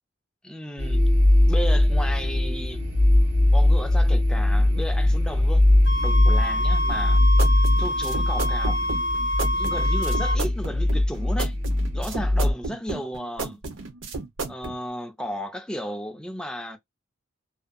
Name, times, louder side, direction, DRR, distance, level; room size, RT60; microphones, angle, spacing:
voice 1, 0.4-1.0 1.4-2.8 3.5-5.6 6.0-7.2 7.8-9.0 9.5-11.5 11.9-13.6 14.5-16.8, equal, 5° left, 0.3 m, -34 dB
sound 1, 0.8-12.5, left 1 dB, 85° right, 1.1 m, -21 dB
sound 2, 5.9-10.4, left 1 dB, 65° left, 0.6 m, -27 dB
sound 3, 6.9-14.8, right 3 dB, 70° right, 0.7 m, -34 dB
2.5 x 2.2 x 2.4 m
head